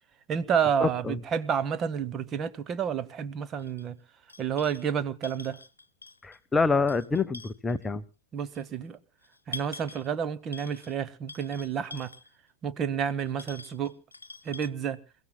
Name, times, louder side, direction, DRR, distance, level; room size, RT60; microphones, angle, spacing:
voice 1, 0.3-4.0 4.4-5.6 8.3-9.0 9.5-12.1 12.6-14.0 14.4-15.0, right 7 dB, 30° right, 0.9 m, -30 dB
voice 2, 0.8-1.2 6.2-8.0, left 4 dB, 15° left, 0.6 m, -26 dB
sound 1, 3.6-3.8 4.3-4.9 5.2-6.4 6.7-7.8 8.5-8.6 9.2-10.1 10.5-11.0 11.3-12.3 13.2-14.7, left 3 dB, 80° left, 0.7 m, -45 dB
28.5 x 16.5 x 2.2 m
figure-of-eight pair, 90°, 0 cm